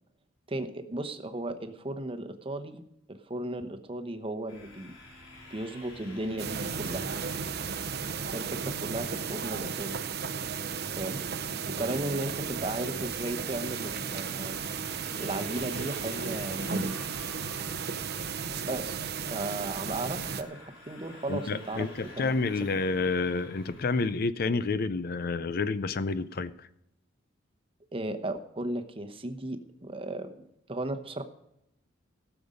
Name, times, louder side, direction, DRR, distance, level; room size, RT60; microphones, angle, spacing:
voice 1, 0.5-2.8 3.1-4.9 5.5-7.1 8.3-9.9 11.0-11.2 11.7-14.6 15.2-17.0 18.6-21.9 22.2-22.5 27.9-30.3 30.7-31.2, right 1 dB, 25° right, 7 dB, 0.9 m, -35 dB
sound 1, 4.5-24.1, left 2 dB, 70° left, 3.5 m, -50 dB
sound 2, 6.4-20.4, right 6 dB, 50° right, 0.7 m, -34 dB
voice 2, 21.3-26.7, left 3 dB, 50° left, 15 dB, 0.5 m, -29 dB
17.0 x 7.0 x 5.1 m, 0.81 s
head